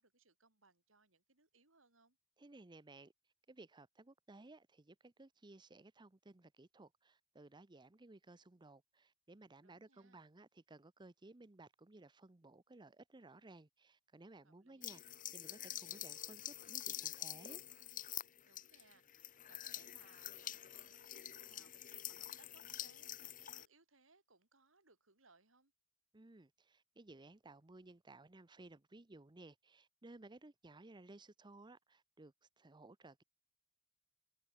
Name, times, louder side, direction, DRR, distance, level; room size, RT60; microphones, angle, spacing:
voice 1, 0.0-2.2 9.6-10.2 14.4-15.0 18.4-25.7, right 3 dB, 80° right, 6.4 m, -70 dB
voice 2, 2.4-3.1 3.5-17.6 26.1-33.2, right 2 dB, 25° right, 0.7 m, -58 dB
sound 1, 14.8-23.7, left 12 dB, 45° left, 0.8 m, -47 dB
head